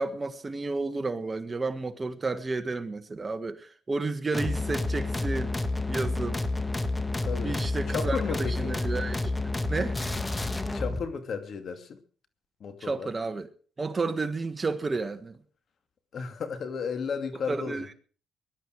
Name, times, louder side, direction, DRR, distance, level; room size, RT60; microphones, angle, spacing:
voice 1, 0.0-5.6 5.9-6.4 7.4-10.0 12.8-13.5 13.8-15.4 17.5-17.8, right 3 dB, 25° right, 1.6 m, -31 dB
sound 1, 4.3-11.0, left 2 dB, 15° left, 1.5 m, -29 dB
voice 2, 7.2-7.6 7.9-8.7 10.7-12.0 12.6-13.1 16.1-17.9, left 6 dB, 55° left, 2.4 m, -33 dB
21.0 x 12.0 x 4.8 m
cardioid pair, 90°, 0 cm